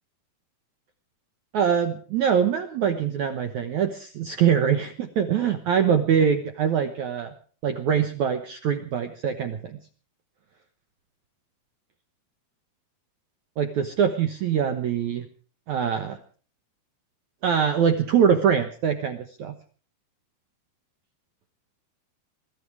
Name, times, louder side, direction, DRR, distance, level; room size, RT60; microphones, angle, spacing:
voice 1, 1.5-7.3 7.6-9.8 13.6-15.3 15.7-16.2 17.4-19.5, right 7 dB, 65° right, 8 dB, 2.0 m, -23 dB
21.5 x 13.0 x 4.8 m, 0.42 s
omnidirectional pair, 4.6 m